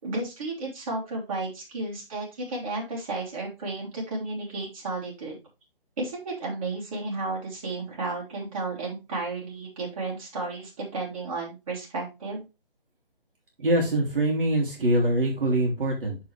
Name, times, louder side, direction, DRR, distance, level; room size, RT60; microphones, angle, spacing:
voice 1, 0.0-5.4 6.0-12.4, right 3 dB, 35° right, -3 dB, 3.3 m, -33 dB
voice 2, 13.6-16.2, right 1 dB, 65° right, -1 dB, 2.8 m, -24 dB
9.5 x 4.7 x 3.3 m, 0.26 s
figure-of-eight pair, 160°, 29 cm